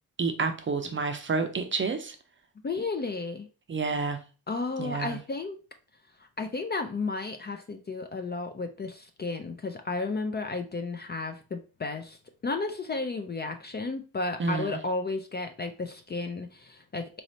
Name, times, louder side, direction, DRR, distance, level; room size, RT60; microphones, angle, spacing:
voice 1, 0.2-2.2 3.7-4.2 4.8-5.2 14.4-14.8, right 4 dB, 35° right, 0.5 m, -29 dB
voice 2, 2.6-3.5 4.5-5.6 6.4-12.2 12.4-17.2, left 3 dB, 30° left, 0.4 m, -33 dB
4.0 x 3.1 x 2.7 m
cardioid pair, 105°, 36 cm